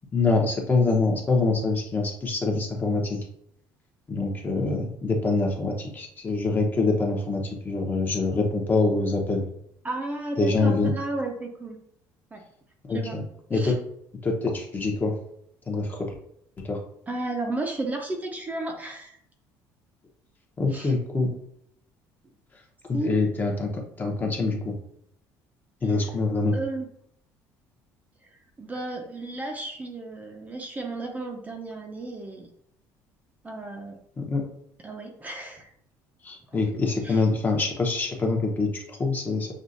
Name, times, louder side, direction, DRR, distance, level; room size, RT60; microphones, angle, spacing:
voice 1, 0.1-3.2 4.1-9.5 10.4-10.9 12.9-13.2 13.5-13.7 14.2-15.1 15.7-16.1 16.6-16.8 20.6-21.3 22.9-24.7 25.8-26.5 34.2-34.4 36.2-39.5, left 3 dB, 25° left, 1 dB, 1.0 m, -25 dB
voice 2, 9.8-11.8 12.3-12.4 12.9-13.2 13.5-13.7 17.1-19.2 20.7-20.9 22.9-23.2 26.5-26.9 28.6-32.5 33.4-34.0 34.8-35.7 37.0-37.2, right 2 dB, 20° right, 2 dB, 0.7 m, -33 dB
6.2 x 2.4 x 2.7 m, 0.72 s
cardioid pair, 115°, 8 cm